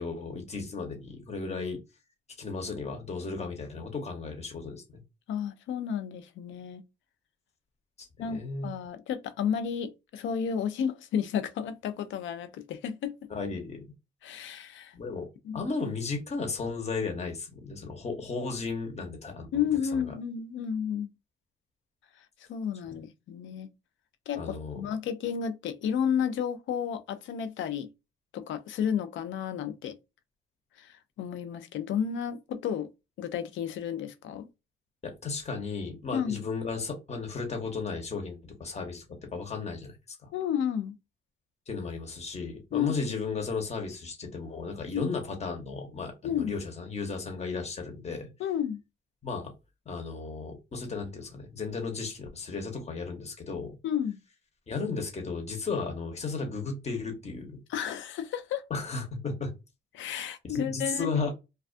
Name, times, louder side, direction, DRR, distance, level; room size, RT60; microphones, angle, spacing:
voice 1, 0.0-1.8 2.4-5.0 8.3-8.7 13.3-13.8 14.9-15.2 15.5-19.6 19.9-20.1 22.8-22.9 24.3-24.8 35.0-39.0 39.3-40.3 41.7-48.3 49.2-49.5 49.9-53.8 54.7-57.6 58.7-59.5 60.4-61.3, left 4 dB, 35° left, 1.0 m, -34 dB
voice 2, 5.3-6.8 8.2-13.2 14.2-14.9 15.4-15.6 19.5-21.1 22.5-23.7 24.3-27.9 28.3-30.0 30.8-32.9 33.2-34.5 36.1-36.4 40.3-40.9 42.7-42.9 44.9-45.1 46.2-46.6 48.4-48.8 53.8-54.2 57.7-58.6 59.9-61.2, left 8 dB, 75° left, 0.5 m, -32 dB
2.3 x 2.2 x 2.5 m
cardioid pair, 90°, 20 cm